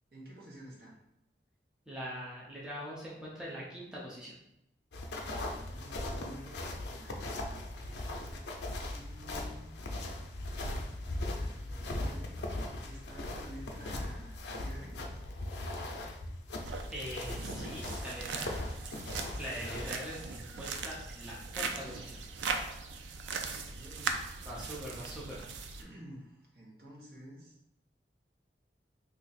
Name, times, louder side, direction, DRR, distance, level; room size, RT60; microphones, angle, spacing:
voice 1, 0.1-1.0 5.2-7.7 8.9-9.7 11.3-12.4 12.8-15.0 23.2-24.2 25.8-27.5, equal, 55° right, -3 dB, 1.0 m, -51 dB
voice 2, 1.9-4.4 16.9-18.5 19.4-22.2 24.5-25.5, equal, 5° right, -6 dB, 0.6 m, -42 dB
sound 1, 4.9-19.9, left 1 dB, 75° left, 0.5 m, -39 dB
sound 2, 16.6-25.8, right 4 dB, 90° right, 0.4 m, -39 dB
2.8 x 2.4 x 4.1 m, 0.84 s
head